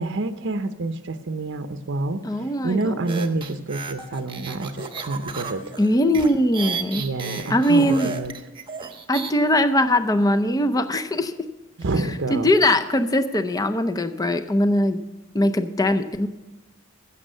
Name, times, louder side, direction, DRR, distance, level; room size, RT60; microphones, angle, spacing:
voice 1, 0.0-2.2 2.6-5.6 7.0-8.3 11.8-12.5, right 2 dB, 60° right, 9 dB, 0.7 m, -27 dB
voice 2, 2.2-3.0 5.8-7.1 7.5-8.1 9.1-11.3 12.3-15.0 15.3-16.3, left 1 dB, 15° left, 9 dB, 0.6 m, -21 dB
sound 1, 3.1-9.3, right 5 dB, 25° right, 1.0 m, -33 dB
15.5 x 7.2 x 5.5 m, 1.1 s
head